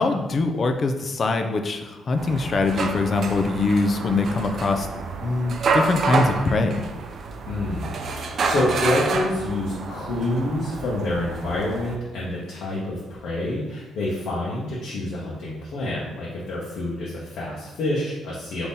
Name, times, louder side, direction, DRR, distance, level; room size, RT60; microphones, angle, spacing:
voice 1, 0.0-4.9 5.2-6.9, left 3 dB, 45° left, 6 dB, 0.5 m, -23 dB
sound 1, 2.2-12.0, right 4 dB, 55° right, 0.4 m, -28 dB
voice 2, 7.5-18.7, left 1 dB, 75° left, -6 dB, 0.9 m, -27 dB
3.6 x 2.9 x 4.1 m, 1.1 s
cardioid pair, 90°, 0 cm